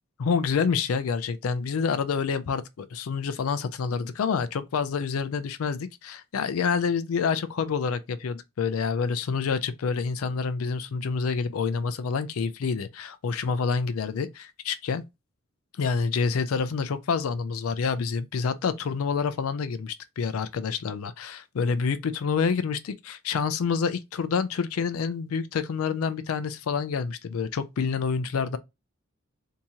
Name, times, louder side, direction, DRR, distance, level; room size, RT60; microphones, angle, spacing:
voice 1, 0.2-15.0 15.8-28.6, left 5 dB, 75° left, 0.4 m, -28 dB
3.5 x 2.8 x 2.8 m
head